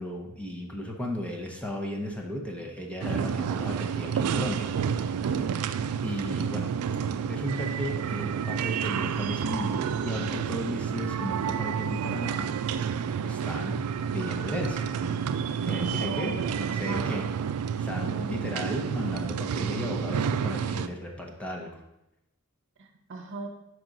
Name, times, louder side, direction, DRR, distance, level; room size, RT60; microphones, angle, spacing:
voice 1, 0.0-4.7 6.0-6.7 7.3-12.5 13.2-13.8 14.1-14.9 15.7-17.3 17.8-21.7, equal, 5° left, 0 dB, 0.7 m, -35 dB
sound 1, 3.0-20.9, right 7 dB, 85° right, 0.3 m, -30 dB
voice 2, 5.2-5.7 15.6-17.1 17.9-18.3 22.8-23.5, right 2 dB, 60° right, 4 dB, 0.8 m, -39 dB
6.0 x 4.7 x 3.9 m, 0.90 s
head